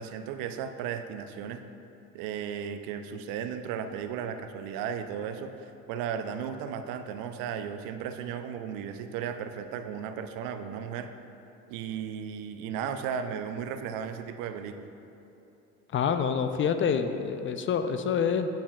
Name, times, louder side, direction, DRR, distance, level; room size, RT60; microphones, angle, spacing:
voice 1, 0.0-1.6 2.1-11.1 11.7-14.9, right 7 dB, 70° right, 9 dB, 0.5 m, -35 dB
voice 2, 15.9-18.5, left 7 dB, 35° left, 8 dB, 0.4 m, -27 dB
8.6 x 5.3 x 2.3 m, 2.9 s
hypercardioid pair, 70°, 35 cm